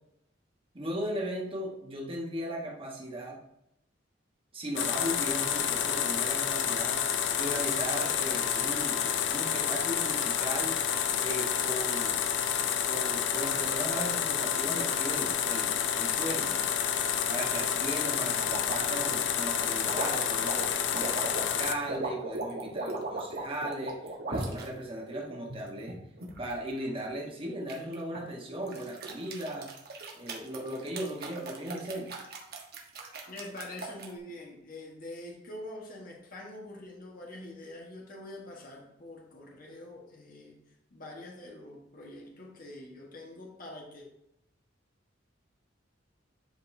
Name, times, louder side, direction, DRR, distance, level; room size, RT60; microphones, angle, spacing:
voice 1, 0.7-3.4 4.5-7.0 7.4-10.8 11.2-12.2 12.8-16.6 17.3-20.7 20.9-24.0 24.3-26.0 26.4-29.7 30.1-32.1, right 1 dB, 30° right, -1 dB, 1.2 m, -37 dB
sound 1, 4.8-21.7, left 8 dB, 75° left, 0.6 m, -29 dB
sound 2, 18.4-24.7 25.2-26.5 27.7-28.2 28.7-34.1, right 3 dB, 55° right, 1.3 m, -38 dB
voice 2, 33.3-40.6 40.9-44.1, left 1 dB, 50° left, -1 dB, 1.5 m, -45 dB
10.5 x 5.2 x 2.7 m, 0.81 s
head